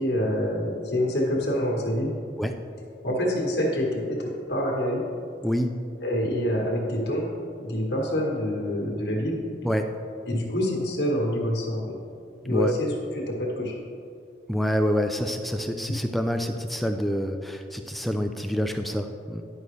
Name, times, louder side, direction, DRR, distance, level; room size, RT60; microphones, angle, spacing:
voice 1, 0.0-2.1 3.0-5.0 6.0-7.3 7.6-9.4 10.3-11.9 12.4-13.8, equal, 70° left, -2 dB, 1.5 m, -26 dB
voice 2, 5.4-5.8 9.6-9.9 12.5-12.7 14.5-19.4, equal, ahead, 5 dB, 0.3 m, -27 dB
10.5 x 5.4 x 3.3 m, 2.5 s
head